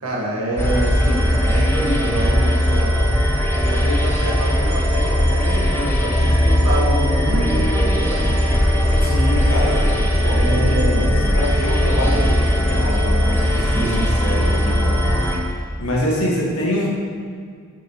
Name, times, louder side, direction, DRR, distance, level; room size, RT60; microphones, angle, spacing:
voice 1, 0.0-3.0 3.6-8.8 10.3-11.4 13.6-14.5, right 1 dB, 75° right, -4 dB, 1.3 m, -27 dB
sound 1, 0.6-15.4, equal, 10° left, 0.5 m, -18 dB
voice 2, 9.0-16.9, left 1 dB, 70° left, -3 dB, 1.5 m, -26 dB
6.9 x 5.9 x 2.9 m, 2.1 s
head